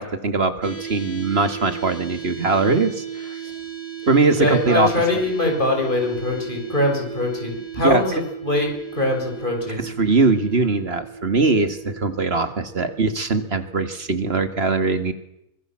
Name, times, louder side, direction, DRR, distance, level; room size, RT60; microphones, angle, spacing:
voice 1, 0.0-3.4 4.0-4.9 7.8-8.1 9.8-15.1, right 3 dB, 45° right, 10 dB, 2.1 m, -21 dB
sound 1, 0.6-14.6, right 8 dB, 10° left, 3.9 m, -36 dB
voice 2, 4.4-9.8, left 2 dB, 35° left, 2 dB, 6.3 m, -23 dB
24.5 x 21.0 x 7.5 m, 0.81 s
omnidirectional pair, 1.5 m